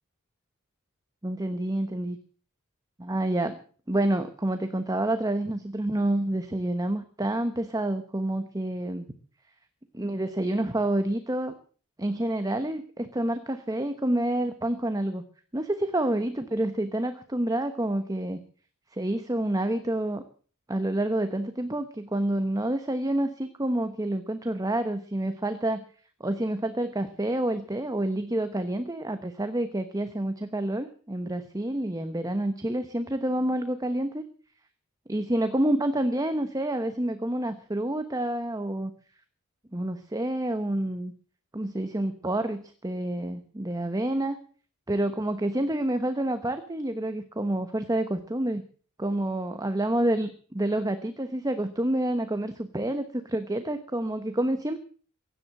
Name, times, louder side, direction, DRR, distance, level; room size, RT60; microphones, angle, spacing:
voice 1, 1.2-2.2 3.0-3.6 3.9-9.1 9.9-11.5 12.0-15.2 15.5-18.4 18.9-20.2 20.7-25.8 26.2-34.2 35.1-38.9 39.7-41.1 41.5-44.4 44.9-48.6 49.0-54.8, right 1 dB, 15° right, 9 dB, 1.0 m, -28 dB
16.5 x 11.0 x 7.7 m, 0.43 s
head